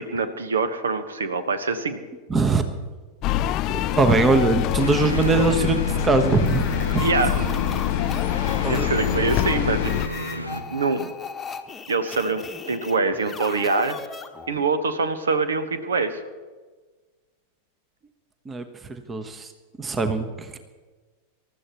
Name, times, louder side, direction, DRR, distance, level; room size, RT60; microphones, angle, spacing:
voice 1, 0.0-2.0 7.0-7.4 8.7-10.0 10.7-11.1 11.9-14.0 14.5-16.2, right 4 dB, 70° right, 11 dB, 1.3 m, -24 dB
voice 2, 2.3-2.6 3.7-7.1 8.6-8.9 18.4-19.5 19.8-20.6, right 3 dB, 20° right, 9 dB, 1.2 m, -22 dB
sound 1, 3.2-10.1, left 14 dB, 40° left, 0.3 m, -25 dB
sound 2, 4.8-10.6, right 1 dB, 85° right, 1.3 m, -32 dB
sound 3, 6.4-14.7, left 6 dB, 15° left, 1.2 m, -37 dB
26.5 x 14.0 x 3.1 m, 1.3 s
figure-of-eight pair, 90°, 0 cm